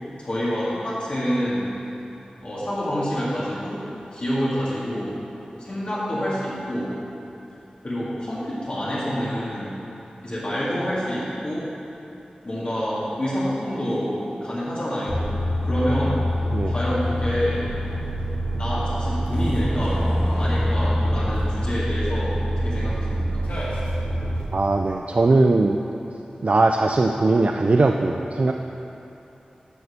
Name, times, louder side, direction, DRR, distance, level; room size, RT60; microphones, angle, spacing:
voice 1, 0.2-1.7 2.4-3.8 4.1-5.2 5.6-6.9 7.8-9.8 10.2-11.7 12.4-15.3 15.6-16.2 16.7-17.7 18.5-20.0 20.3-23.2, equal, 50° left, -10 dB, 2.4 m, -27 dB
sound 1, 15.1-24.4, equal, 65° left, 2.5 m, -25 dB
voice 2, 24.5-25.8 26.4-28.5, right 2 dB, 55° right, 3 dB, 0.4 m, -19 dB
8.4 x 6.8 x 6.8 m, 3.0 s
wide cardioid pair, 75°, 3 cm